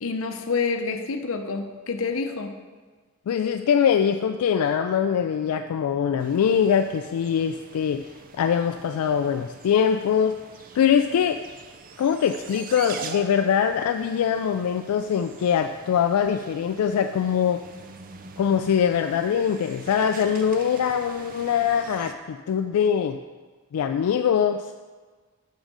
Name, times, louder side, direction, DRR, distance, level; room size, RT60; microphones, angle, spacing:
voice 1, 0.0-2.5, left 4 dB, 65° left, 6 dB, 0.7 m, -28 dB
voice 2, 3.3-8.0 8.3-10.4 10.7-11.4 12.0-17.6 18.4-23.2 23.7-24.7, left 8 dB, 85° left, 7 dB, 0.3 m, -23 dB
sound 1, 6.2-22.1, right 5 dB, 40° right, 0.4 m, -44 dB
6.4 x 6.3 x 4.8 m, 1.4 s
head